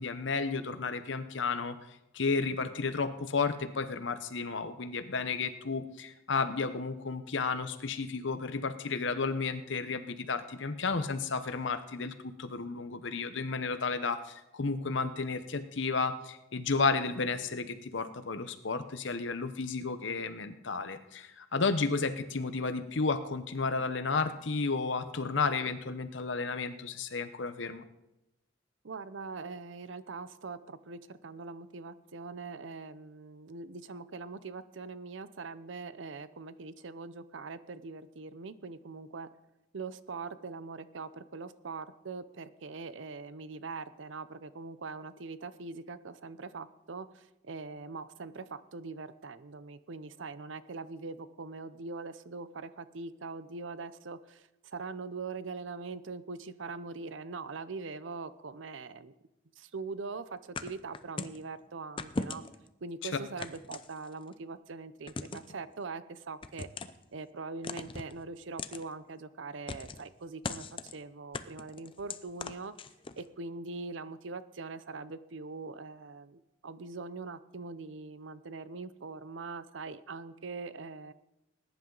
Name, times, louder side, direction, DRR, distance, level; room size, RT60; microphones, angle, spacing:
voice 1, 0.0-1.8 2.1-27.8 63.0-63.1, left 4 dB, 65° left, 10 dB, 0.9 m, -32 dB
voice 2, 28.8-39.3 39.7-59.1 59.6-62.4 62.8-66.7 67.1-72.7 73.2-81.1, right 4 dB, 70° right, 14 dB, 0.7 m, -42 dB
sound 1, 60.6-61.4 62.0-62.7 63.4-64.3 65.1-65.5 66.4-67.0 67.6-68.1 68.6-68.8 69.7-70.1 70.4-71.0 71.3-73.2, left 3 dB, 25° left, 0.5 m, -39 dB
20.0 x 10.5 x 3.9 m, 0.90 s
head